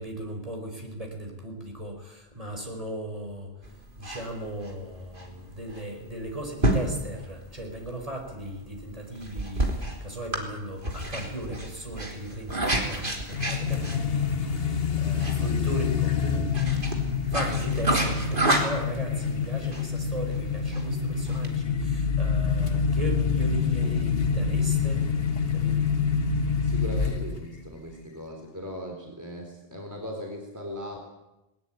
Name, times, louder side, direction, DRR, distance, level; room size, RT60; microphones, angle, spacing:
voice 1, 0.0-3.5 4.0-16.8 17.3-25.0 25.5-25.8, right 1 dB, 35° right, 2 dB, 4.9 m, -37 dB
sound 1, 3.6-21.5, right 1 dB, 55° right, 3.6 m, -31 dB
sound 2, 13.3-27.6, left 6 dB, 65° left, 1.5 m, -26 dB
voice 2, 26.6-31.0, equal, 15° right, 1 dB, 3.8 m, -38 dB
20.5 x 19.5 x 9.2 m, 0.97 s
omnidirectional pair, 1.1 m